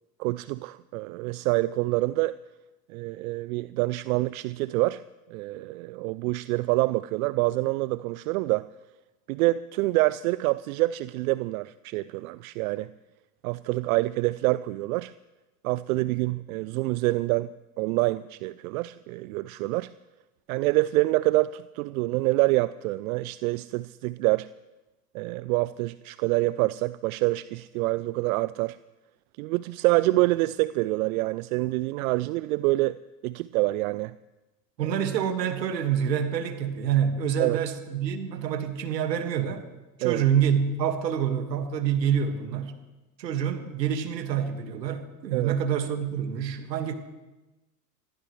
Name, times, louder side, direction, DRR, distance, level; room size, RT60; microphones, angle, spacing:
voice 1, 0.2-2.3 2.9-5.0 5.3-8.7 9.3-12.9 13.4-15.1 15.6-19.9 20.5-24.5 25.1-28.8 29.4-33.0 33.2-34.1 37.4-37.6 40.0-40.2 45.3-45.5, right 20 dB, 60° right, 0.5 m, -26 dB
voice 2, 34.8-39.7 40.0-42.8 43.2-47.0, right 8 dB, 80° right, 1.9 m, -27 dB
24.0 x 15.0 x 3.2 m
hypercardioid pair, 85°, 49 cm